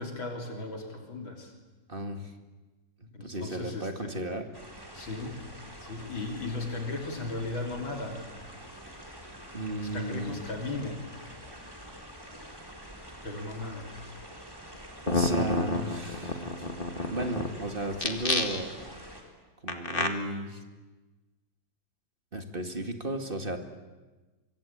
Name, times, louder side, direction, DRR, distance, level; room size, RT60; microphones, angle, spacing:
voice 1, 0.0-1.5 3.1-4.1 4.9-5.4 5.8-8.2 9.8-11.1 13.2-13.9, left 2 dB, 85° left, 2 dB, 4.1 m, -36 dB
voice 2, 1.9-2.3 3.0-4.5 9.5-10.4 15.1-16.5 17.1-18.7 19.6-20.6 22.3-23.6, right 1 dB, 25° right, 6 dB, 2.2 m, -34 dB
sound 1, 4.5-19.2, equal, 10° right, 4.0 m, -46 dB
sound 2, 14.7-14.8 15.1-17.5 17.9-18.8 19.7-20.1, left 2 dB, 30° left, 2.1 m, -29 dB
24.5 x 24.0 x 8.8 m, 1.2 s
omnidirectional pair, 2.1 m